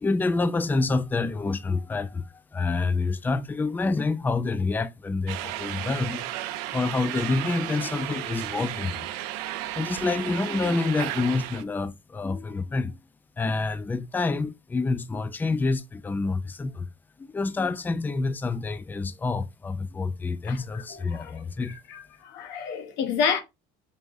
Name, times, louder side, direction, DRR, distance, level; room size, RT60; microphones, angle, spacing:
voice 1, 0.0-6.3 6.7-9.1 9.8-13.0 13.4-16.9 17.2-21.8, left 3 dB, 10° left, 0.3 m, -27 dB
sound 1, 5.3-11.6, right 14 dB, 85° right, 0.4 m, -34 dB
voice 2, 20.5-23.4, left 6 dB, 75° left, 1.2 m, -30 dB
3.4 x 2.5 x 3.9 m
supercardioid pair, 105°, 19 cm